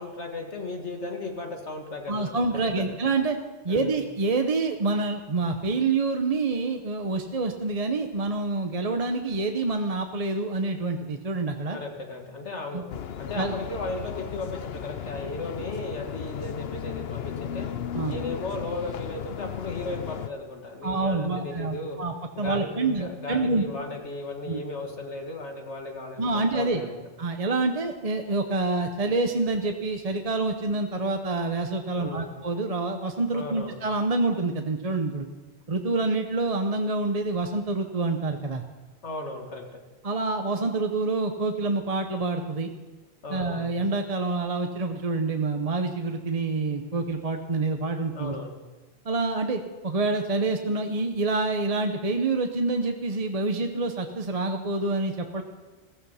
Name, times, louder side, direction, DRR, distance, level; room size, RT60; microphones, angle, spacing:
voice 1, 0.0-2.3 2.8-2.9 3.7-4.0 11.7-12.9 13.2-17.7 18.1-22.0 22.4-26.9 31.9-32.3 33.3-33.8 39.0-39.8 43.2-43.7 48.1-48.6, left 2 dB, 90° left, 2 dB, 2.3 m, -35 dB
voice 2, 2.1-3.4 3.6-11.8 12.7-12.8 13.3-13.5 17.9-18.2 20.8-23.6 24.5-24.6 26.2-26.8 27.2-35.3 35.7-38.6 40.0-42.7 43.3-48.3 49.0-55.4, right 3 dB, 35° right, 5 dB, 1.0 m, -27 dB
sound 1, 12.9-20.3, left 8 dB, 65° left, 0.9 m, -35 dB
15.5 x 15.0 x 5.7 m, 1.2 s
omnidirectional pair, 1.1 m